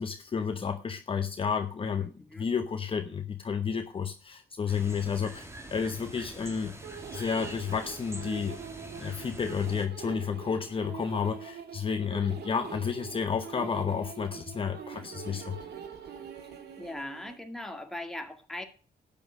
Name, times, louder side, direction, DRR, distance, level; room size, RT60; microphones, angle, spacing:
voice 1, 0.0-6.7 7.1-8.6 8.9-15.6, left 6 dB, 30° left, 7 dB, 1.0 m, -31 dB
sound 1, 4.7-9.9, right 1 dB, 15° right, 2.5 m, -44 dB
sound 2, 6.8-17.4, right 7 dB, 80° right, 2.6 m, -44 dB
voice 2, 16.8-18.7, left 1 dB, ahead, 4 dB, 2.1 m, -39 dB
12.5 x 8.9 x 6.2 m, 0.38 s
cardioid pair, 135°, 17 cm